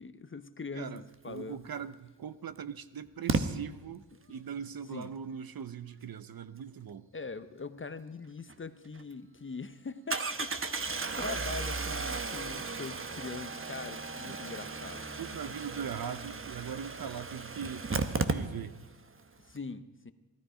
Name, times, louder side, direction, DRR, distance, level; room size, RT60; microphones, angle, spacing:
voice 1, 0.0-1.6 4.9-5.1 7.1-15.0 19.4-20.1, left 4 dB, 25° left, 12 dB, 0.7 m, -42 dB
voice 2, 0.7-4.0 4.3-7.1 14.2-14.4 15.2-18.8, right 8 dB, 50° right, 14 dB, 0.7 m, -41 dB
Engine starting, 1.8-1.9 3.3-3.4 8.5-8.6 8.9-9.0 10.1-18.9 19.2-19.3 19.5-19.6, right 4 dB, 25° right, 1.0 m, -35 dB
17.0 x 13.0 x 5.0 m, 1.2 s
cardioid pair, 100°, 46 cm